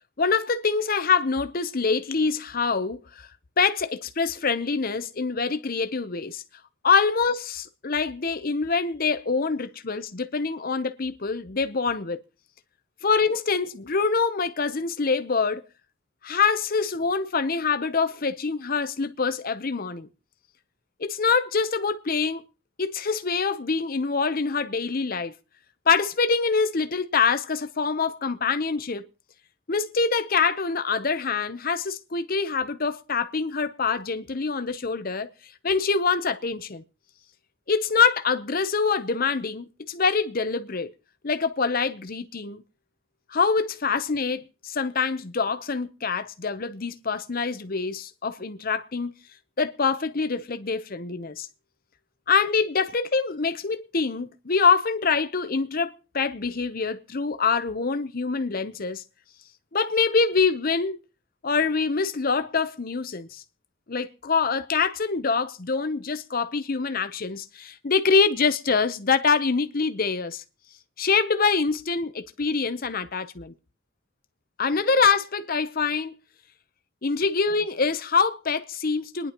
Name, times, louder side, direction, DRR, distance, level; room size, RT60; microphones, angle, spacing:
voice 1, 0.2-3.0 3.6-6.4 6.8-12.2 13.0-15.6 16.2-20.1 21.0-22.4 22.8-25.3 25.9-29.0 29.7-35.3 35.6-36.8 37.7-40.9 41.2-42.6 43.3-49.1 49.6-51.5 52.3-59.0 59.7-61.0 61.4-63.4 63.9-70.4 71.0-73.5 74.6-76.2 77.0-79.3, left 5 dB, 45° left, 0.8 m, -25 dB
28.5 x 10.5 x 3.0 m
head